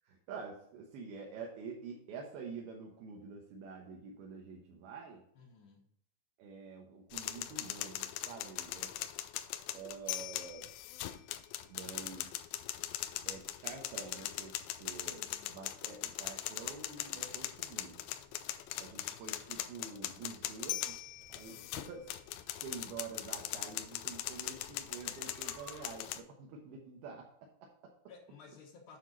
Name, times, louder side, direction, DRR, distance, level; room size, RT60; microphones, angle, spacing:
voice 1, 0.1-5.2 6.4-8.9 9.7-10.7 11.7-12.4 13.3-18.0 18.8-22.1 22.6-27.9, right 5 dB, 70° right, 0 dB, 3.0 m, -48 dB
voice 2, 5.3-5.9 14.9-15.7 18.8-19.0 19.5-19.9 28.1-29.0, left 5 dB, 70° left, -3 dB, 3.0 m, -58 dB
sound 1, 7.1-26.2, left 13 dB, 85° left, 2.1 m, -40 dB
sound 2, 16.4-26.3, right 3 dB, 30° right, 1.7 m, -63 dB
9.0 x 6.0 x 4.0 m, 0.70 s
omnidirectional pair, 4.8 m